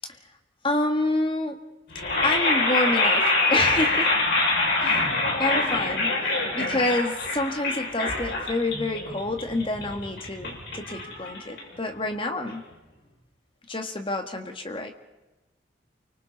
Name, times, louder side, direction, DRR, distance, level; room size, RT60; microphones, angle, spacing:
voice 1, 0.6-1.6 2.2-4.1 4.8-5.1 5.4-6.1 6.5-12.6 13.7-14.9, left 2 dB, 25° left, 5 dB, 1.9 m, -28 dB
sound 1, 1.9-12.0, left 2 dB, 65° left, 6.4 m, -25 dB
29.0 x 24.5 x 4.2 m, 1.1 s
head